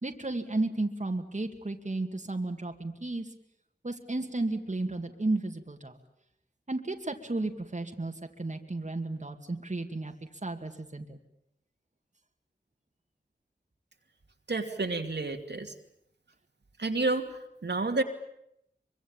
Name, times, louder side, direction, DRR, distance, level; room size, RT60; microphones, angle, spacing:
voice 1, 0.0-3.3 3.8-6.0 6.7-8.1 8.4-10.1 10.4-11.2, right 2 dB, 40° right, 4 dB, 2.3 m, -33 dB
voice 2, 14.5-15.7 16.8-17.2 17.6-18.0, right 3 dB, 70° right, 4 dB, 2.6 m, -29 dB
24.5 x 24.0 x 9.0 m, 0.79 s
wide cardioid pair, 60°, 18 cm